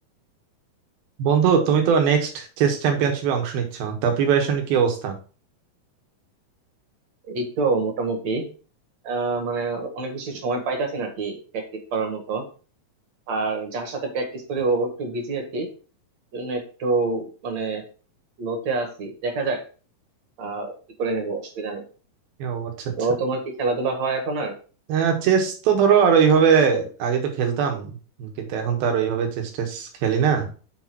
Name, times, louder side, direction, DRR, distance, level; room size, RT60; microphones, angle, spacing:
voice 1, 1.2-5.2 22.4-22.9 24.9-27.9 28.2-30.5, right 7 dB, 80° right, 4 dB, 3.3 m, -21 dB
voice 2, 7.3-8.4 9.0-11.6 11.9-12.4 13.3-15.7 16.3-17.8 18.4-19.6 20.4-21.8 23.0-24.5, right 3 dB, 55° right, 4 dB, 2.6 m, -26 dB
7.0 x 4.3 x 6.0 m, 0.37 s
omnidirectional pair, 4.2 m